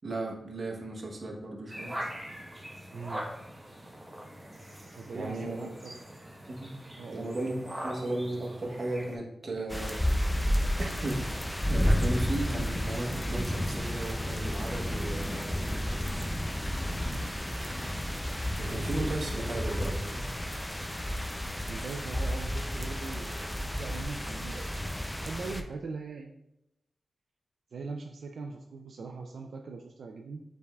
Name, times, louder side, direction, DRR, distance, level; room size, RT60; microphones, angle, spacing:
voice 1, 0.0-2.1 5.1-5.6 6.5-6.7 7.1-7.6 7.8-10.1 10.4-15.7 18.6-20.2, right 2 dB, 45° right, -1 dB, 1.0 m, -35 dB
sound 1, 1.7-9.2, equal, 15° right, 0.8 m, -42 dB
voice 2, 2.9-3.3 4.8-6.0 7.0-7.3 21.3-26.3 27.7-30.4, right 4 dB, 75° right, 2 dB, 0.3 m, -41 dB
sound 2, 9.7-25.6, equal, 10° left, 0.4 m, -31 dB
6.9 x 3.4 x 2.3 m, 0.84 s
wide cardioid pair, 120°, 0 cm